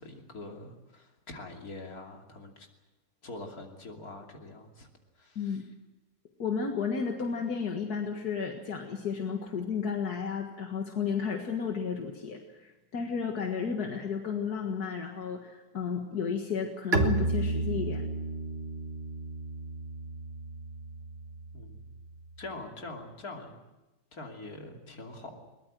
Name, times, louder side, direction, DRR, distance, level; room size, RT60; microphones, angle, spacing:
voice 1, 0.0-2.7 3.2-4.9 5.1-5.7 21.5-22.0 22.4-23.6 24.1-25.4, left 2 dB, 70° left, 2 dB, 3.3 m, -44 dB
voice 2, 6.4-18.0, left 6 dB, 90° left, 3 dB, 2.2 m, -33 dB
Bowed string instrument, 16.9-22.5, right 2 dB, 40° right, 1.8 m, -33 dB
22.0 x 20.0 x 7.6 m, 1.0 s
omnidirectional pair, 1.6 m